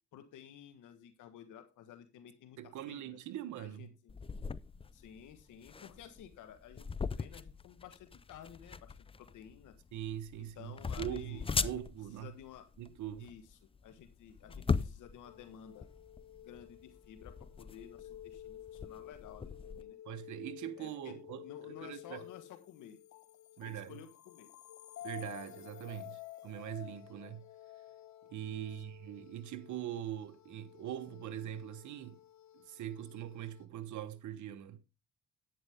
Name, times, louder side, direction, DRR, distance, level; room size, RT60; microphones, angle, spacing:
voice 1, 0.1-3.2 3.6-4.1 4.9-9.7 10.4-11.8 12.2-12.7 13.2-15.9 16.4-20.0 20.8-23.0 23.6-24.5 28.5-28.8, left 9 dB, 80° left, 1.4 m, -53 dB
voice 2, 2.6-3.9 9.9-12.3 12.8-13.3 20.0-22.2 23.6-24.0 25.0-27.4 28.3-32.2 32.5-34.8, right 11 dB, 75° right, 1.2 m, -42 dB
sound 1, 4.1-19.8, left 5 dB, 20° left, 0.5 m, -40 dB
sound 2, 15.2-33.7, left 12 dB, 65° left, 1.5 m, -52 dB
11.0 x 9.3 x 3.6 m
cardioid pair, 90°, 30 cm